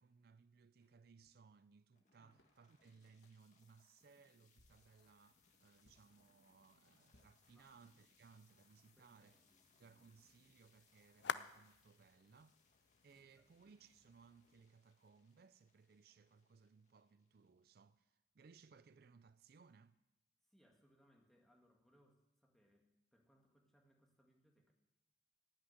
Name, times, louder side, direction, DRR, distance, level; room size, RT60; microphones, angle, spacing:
voice 1, 0.0-9.4 9.8-12.6 13.0-20.0, right 5 dB, 55° right, 0.4 m, -65 dB
sound 1, 0.8-1.0 1.9-2.0 2.4-2.7 3.2-3.6 4.1-4.2 4.6-5.0 5.8-6.1 7.1-8.0, left 1 dB, 90° left, 1.4 m, -74 dB
sound 2, 1.9-18.0, left 4 dB, 40° left, 1.8 m, -76 dB
sound 3, 4.6-14.6, left 7 dB, 70° left, 0.4 m, -53 dB
voice 2, 9.0-9.7 13.1-13.5 20.4-24.7, equal, ahead, 1.8 m, -74 dB
15.5 x 6.3 x 9.8 m
head